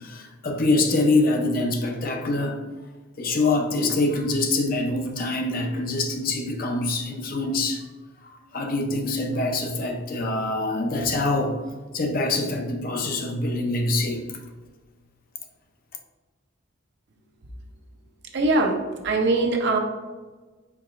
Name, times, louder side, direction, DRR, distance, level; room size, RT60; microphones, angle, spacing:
voice 1, 0.0-2.6 3.2-7.8 8.2-11.6 11.9-14.3, left 2 dB, 45° left, 3 dB, 0.5 m, -25 dB
voice 2, 18.3-19.8, right 2 dB, 55° right, 2 dB, 0.6 m, -22 dB
4.7 x 4.6 x 2.4 m, 1.3 s
head